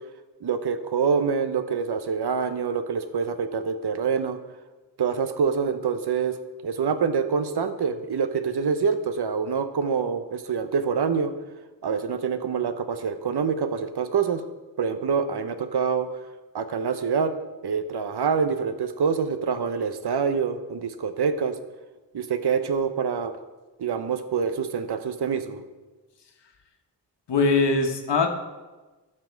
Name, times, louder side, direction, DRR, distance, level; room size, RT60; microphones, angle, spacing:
voice 1, 0.4-4.4 5.0-6.4 6.6-11.3 11.8-14.4 14.8-16.2 16.5-17.3 17.6-21.6 22.1-23.3 23.8-25.6, right 6 dB, 65° right, 10 dB, 0.9 m, -26 dB
voice 2, 27.3-28.3, left 3 dB, 70° left, 5 dB, 1.4 m, -21 dB
12.0 x 6.1 x 4.6 m, 1.2 s
cardioid pair, 45°, 43 cm